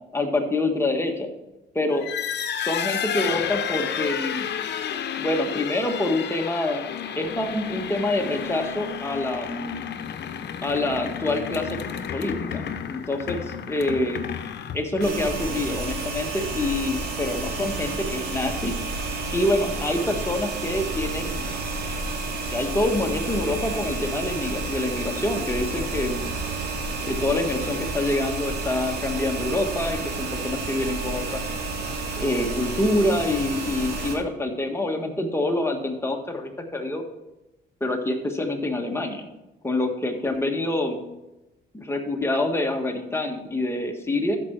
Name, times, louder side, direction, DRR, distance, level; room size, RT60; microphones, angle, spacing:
voice 1, 0.1-1.3 1.7-2.1 2.6-4.5 5.2-6.9 7.2-9.8 10.6-11.8 12.1-12.6 12.9-13.4 13.7-14.2 14.7-18.7 19.3-21.5 22.5-26.3 27.1-31.4 32.2-37.0 37.8-39.3 39.6-41.0 41.7-44.4, left 2 dB, 10° left, 3 dB, 1.6 m, -26 dB
sound 1, 1.9-15.3, left 8 dB, 60° left, 0.8 m, -31 dB
sound 2, 15.0-34.2, right 3 dB, 55° right, 2.9 m, -30 dB
13.5 x 5.3 x 4.7 m, 0.97 s
cardioid pair, 90°, 20 cm